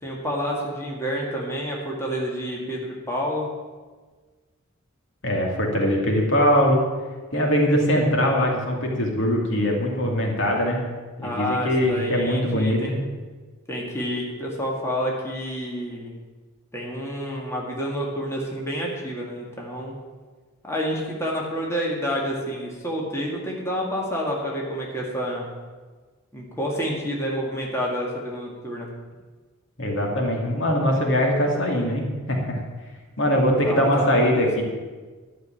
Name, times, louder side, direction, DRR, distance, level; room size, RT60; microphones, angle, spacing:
voice 1, 0.0-3.5 11.2-12.9 13.7-16.1 16.7-20.0 20.6-25.5 26.3-28.9 33.7-34.6, equal, 15° left, -3 dB, 2.0 m, -29 dB
voice 2, 5.2-6.8 7.3-10.8 11.2-13.0 29.8-32.6 33.2-34.6, equal, 60° left, 0 dB, 2.5 m, -22 dB
12.0 x 6.5 x 8.9 m, 1.4 s
head